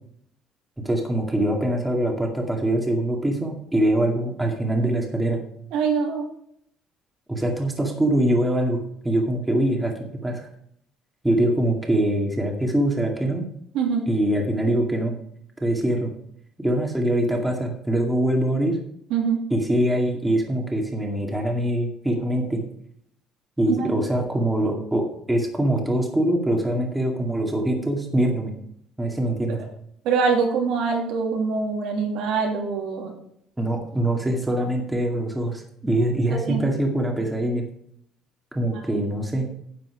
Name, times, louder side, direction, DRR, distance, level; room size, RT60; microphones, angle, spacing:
voice 1, 0.8-5.4 7.3-10.5 11.2-13.4 14.1-15.1 15.6-16.1 16.6-18.8 19.5-22.6 23.6-28.5 29.0-29.6 33.6-37.6 38.5-39.4, right 1 dB, 10° right, 1 dB, 2.2 m, -23 dB
voice 2, 5.7-6.3 13.7-14.1 19.1-19.4 23.7-23.9 30.0-33.1 36.3-36.6 38.9-39.0, right 5 dB, 80° right, 1 dB, 2.8 m, -24 dB
10.0 x 7.5 x 5.0 m, 0.70 s
cardioid pair, 130°, 0 cm